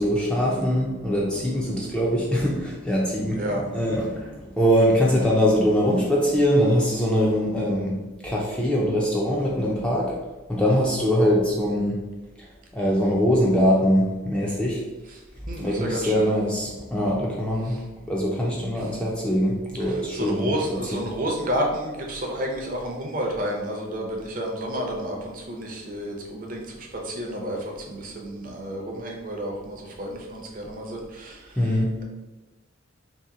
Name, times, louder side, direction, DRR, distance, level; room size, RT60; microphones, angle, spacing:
voice 1, 0.0-3.5 3.7-8.0 8.2-10.1 10.5-12.0 12.7-14.8 15.6-17.8 18.1-20.5 20.9-21.0 31.6-31.9, equal, 5° left, -4 dB, 0.4 m, -22 dB
voice 2, 3.4-3.7 15.1-15.2 15.5-16.3 17.7-17.8 18.7-18.9 19.8-31.6, equal, 40° right, 0 dB, 0.6 m, -31 dB
2.8 x 2.7 x 3.7 m, 1.1 s
head